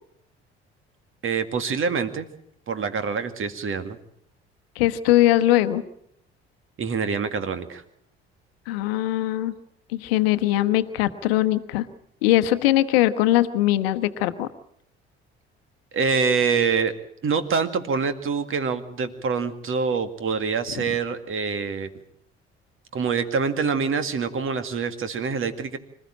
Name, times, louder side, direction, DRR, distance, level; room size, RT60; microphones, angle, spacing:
voice 1, 1.2-2.3 2.7-4.0 6.8-7.8 15.9-16.9 17.2-21.9 22.9-25.8, right 5 dB, 40° right, 10 dB, 2.1 m, -25 dB
voice 2, 4.8-5.8 8.7-9.5 9.9-11.9 12.2-14.5, left 14 dB, 70° left, 11 dB, 1.1 m, -21 dB
26.0 x 14.5 x 8.7 m, 0.72 s
figure-of-eight pair, 50°, 31 cm